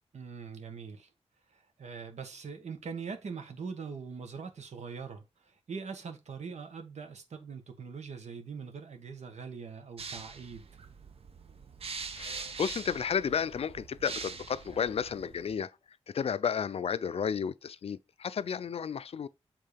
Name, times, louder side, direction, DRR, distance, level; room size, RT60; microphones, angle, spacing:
voice 1, 0.1-1.1 1.5-10.8, right 5 dB, 80° right, 1.5 m, -42 dB
sound 1, 10.0-15.6, right 5 dB, 60° right, 1.0 m, -43 dB
voice 2, 12.2-19.3, left 7 dB, 60° left, 0.4 m, -32 dB
7.6 x 3.8 x 5.1 m
wide cardioid pair, 170°, 11 cm